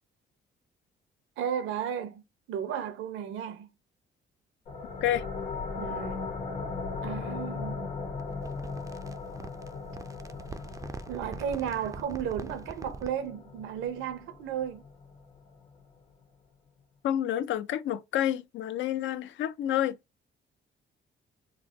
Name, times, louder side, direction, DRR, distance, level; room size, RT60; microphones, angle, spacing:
voice 1, 1.4-2.2 2.5-3.7 5.8-6.3 7.0-7.9 11.1-14.8, right 8 dB, 90° right, 0.7 m, -34 dB
sound 1, 4.7-16.0, left 4 dB, 90° left, 1.4 m, -38 dB
sound 2, 8.2-13.3, right 4 dB, 15° right, 0.3 m, -44 dB
voice 2, 17.0-20.0, left 11 dB, 75° left, 0.4 m, -29 dB
3.4 x 2.1 x 3.8 m
cardioid pair, 90°, 20 cm